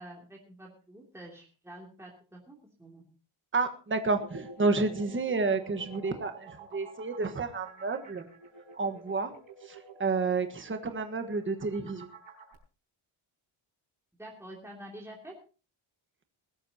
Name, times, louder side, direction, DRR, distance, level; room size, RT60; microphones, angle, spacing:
voice 1, 0.0-3.0 14.2-15.3, right 1 dB, 5° right, -2 dB, 2.9 m, -47 dB
voice 2, 3.5-8.3 8.7-9.3 9.7-12.1, right 3 dB, 25° right, 8 dB, 1.4 m, -30 dB
sound 1, 4.1-12.5, right 3 dB, 70° right, 4.7 m, -49 dB
21.0 x 13.0 x 2.9 m, 0.36 s
wide cardioid pair, 155°, 50 cm